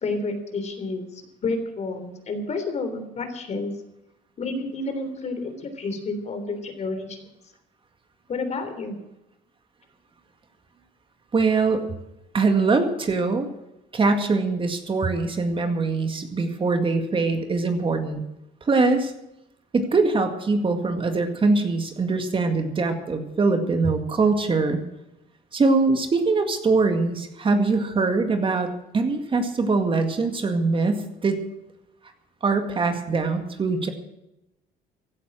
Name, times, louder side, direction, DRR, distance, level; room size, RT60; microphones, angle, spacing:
voice 1, 0.0-3.7 4.4-7.2 8.3-9.0, left 3 dB, 40° left, 8 dB, 3.4 m, -30 dB
voice 2, 11.3-11.8 12.3-13.5 13.9-18.2 18.6-19.1 19.7-24.8 25.5-28.7 28.9-31.4 32.4-33.9, right 3 dB, 30° right, 6 dB, 2.0 m, -22 dB
16.0 x 11.5 x 6.2 m, 0.90 s
cardioid pair, 110°, 17 cm